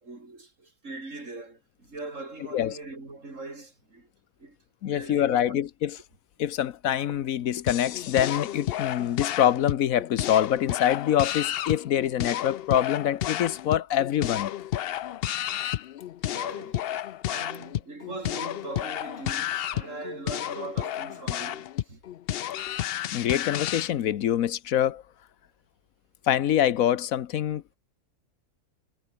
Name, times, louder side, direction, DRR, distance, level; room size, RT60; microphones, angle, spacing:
voice 1, 0.0-4.1 4.4-4.6 4.8-5.6 16.3-17.0 17.3-22.0, right 2 dB, 50° right, 4.4 m, -41 dB
voice 2, 4.8-6.0 6.4-14.5 23.1-25.0 26.3-27.8, left 10 dB, 65° left, 1.2 m, -25 dB
sound 1, 7.7-23.9, left 12 dB, 85° left, 0.5 m, -31 dB
omnidirectional pair, 1.6 m